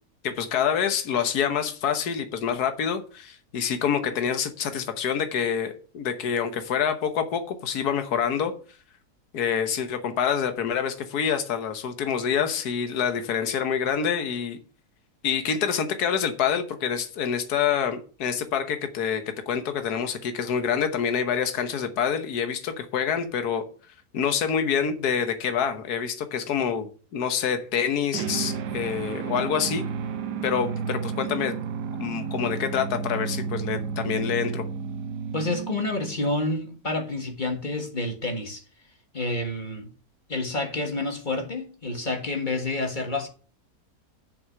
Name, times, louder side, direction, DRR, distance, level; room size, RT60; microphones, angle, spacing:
voice 1, 0.2-8.5 9.3-14.6 15.2-23.6 24.1-26.9 27.1-29.8 30.4-31.5 32.0-34.6, left 7 dB, 75° left, 1.6 m, -26 dB
sound 1, 28.1-36.4, right 6 dB, 80° right, 1.4 m, -32 dB
voice 2, 35.3-38.6 39.1-39.9 40.3-43.3, left 2 dB, 30° left, 1.6 m, -29 dB
7.0 x 6.2 x 7.7 m
omnidirectional pair, 1.7 m